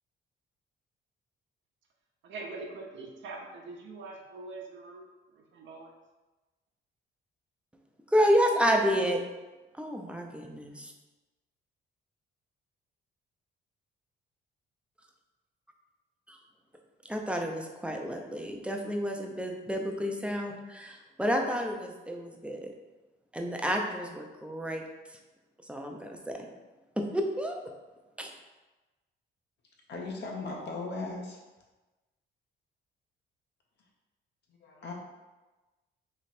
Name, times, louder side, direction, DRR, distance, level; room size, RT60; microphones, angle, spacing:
voice 1, 2.2-5.9, right 3 dB, 70° right, 0 dB, 0.8 m, -43 dB
voice 2, 8.1-9.2 9.7-10.9 16.3-16.4 17.1-22.7 23.3-24.8 25.7-26.4 27.0-27.6 28.2-28.3, equal, 5° right, 2 dB, 0.6 m, -30 dB
voice 3, 29.9-31.4 34.6-34.9, left 3 dB, 60° left, -1 dB, 1.0 m, -37 dB
3.3 x 3.0 x 4.2 m, 1.1 s
cardioid pair, 90°, 20 cm